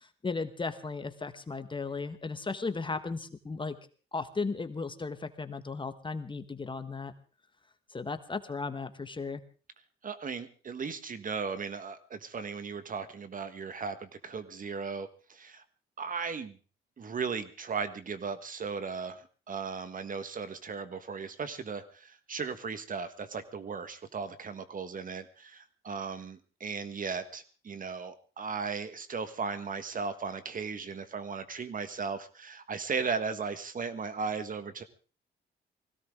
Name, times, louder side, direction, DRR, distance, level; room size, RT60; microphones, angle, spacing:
voice 1, 0.0-3.8 4.1-7.1 7.9-9.4, left 4 dB, 25° left, 10 dB, 1.5 m, -36 dB
voice 2, 10.0-15.6 16.0-16.6 17.0-34.8, right 5 dB, 45° right, 11 dB, 1.6 m, -36 dB
20.5 x 17.0 x 3.8 m, 0.36 s
cardioid pair, 90°, 20 cm